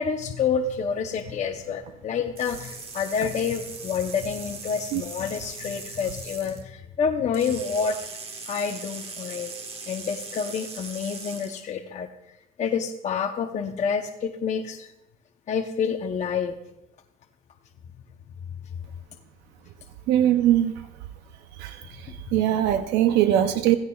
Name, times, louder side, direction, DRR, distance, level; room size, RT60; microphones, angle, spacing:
voice 1, 0.0-8.0 8.5-9.6 9.9-12.1 12.6-14.9 15.5-16.6, left 6 dB, 45° left, 4 dB, 0.7 m, -28 dB
sound 1, 2.4-6.6 7.3-11.6, right 4 dB, 35° right, 1.5 m, -40 dB
voice 2, 20.1-20.7 21.6-21.8 22.3-23.8, right 11 dB, 90° right, 9 dB, 0.6 m, -20 dB
16.0 x 15.5 x 2.3 m, 0.92 s
cardioid pair, 110°, 17 cm